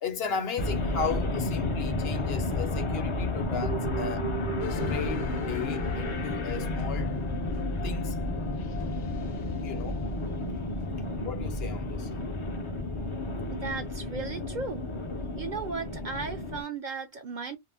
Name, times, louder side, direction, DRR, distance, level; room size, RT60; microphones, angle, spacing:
voice 1, 0.0-4.4 4.7-7.2 7.8-8.3 9.6-10.0 11.2-12.1, left 6 dB, 65° left, 0.9 m, -36 dB
sound 1, 0.6-16.6, left 2 dB, 40° left, 0.4 m, -32 dB
sound 2, 3.6-9.0 9.3-9.6, right 11 dB, 85° right, 0.9 m, -39 dB
sound 3, 4.6-11.2, left 8 dB, 90° left, 0.9 m, -39 dB
voice 2, 13.5-14.9 15.4-17.6, right 4 dB, 55° right, 0.6 m, -36 dB
2.5 x 2.1 x 3.3 m
omnidirectional pair, 1.1 m